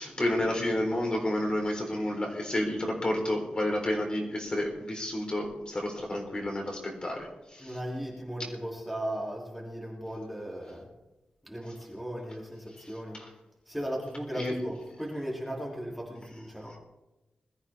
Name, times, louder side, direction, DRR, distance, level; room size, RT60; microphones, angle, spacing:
voice 1, 0.0-7.8 14.3-14.5, left 1 dB, 35° left, 0 dB, 3.9 m, -30 dB
voice 2, 7.6-10.9 11.5-13.2 13.7-16.8, equal, ahead, -3 dB, 3.2 m, -37 dB
21.0 x 13.5 x 3.7 m, 0.99 s
wide cardioid pair, 100°, 3 cm